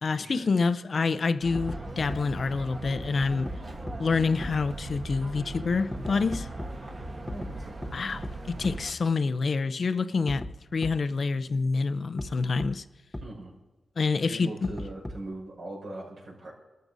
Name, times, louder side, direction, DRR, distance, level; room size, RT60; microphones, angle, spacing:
voice 1, 0.0-3.5 4.0-6.5 7.9-10.5 10.7-12.8 14.0-14.5, left 4 dB, 55° left, 0.5 m, -27 dB
sound 1, 1.4-8.9, right 1 dB, 50° right, 1.7 m, -39 dB
sound 2, 1.5-1.8 2.1-2.2 3.5-3.6 3.9-4.0 4.4-4.5 5.9-6.7 7.3-7.5 7.8-7.9 8.2-8.3 8.6-8.7 10.3-10.5 10.8-10.9 12.2-12.3 12.6-12.7 13.1-13.2 14.6-15.3, left 1 dB, 15° left, 0.8 m, -35 dB
voice 2, 6.9-8.1 13.2-13.5 14.2-16.5, right 1 dB, 75° right, 5.3 m, -41 dB
28.0 x 13.5 x 2.7 m
wide cardioid pair, 90°, 0 cm